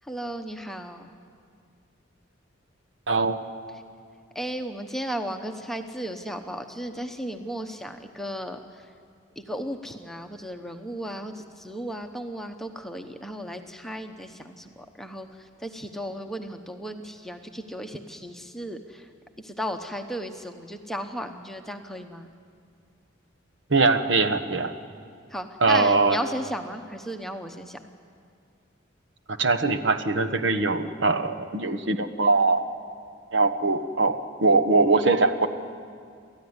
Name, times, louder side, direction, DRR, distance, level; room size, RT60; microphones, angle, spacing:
voice 1, 0.1-1.1 4.3-8.6 9.4-15.3 15.6-19.0 19.4-22.3 25.3-27.8, equal, ahead, 5 dB, 1.0 m, -35 dB
voice 2, 3.1-3.4 23.7-24.7 25.6-26.2 29.3-32.7 33.3-35.5, right 3 dB, 65° right, 6 dB, 1.3 m, -22 dB
29.5 x 14.0 x 9.7 m, 2.3 s
head